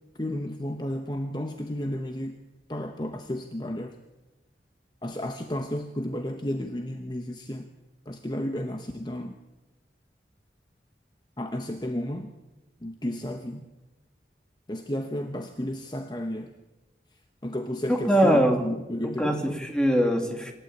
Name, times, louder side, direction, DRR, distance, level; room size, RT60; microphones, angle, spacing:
voice 1, 0.2-2.4 2.7-4.0 5.0-7.7 8.1-9.4 11.4-12.3 12.8-13.6 14.7-16.5 17.4-19.6, left 1 dB, 25° left, 6 dB, 1.0 m, -32 dB
voice 2, 17.9-18.7 19.0-20.5, equal, 5° left, 3 dB, 2.4 m, -22 dB
26.5 x 12.5 x 8.6 m, 1.1 s
head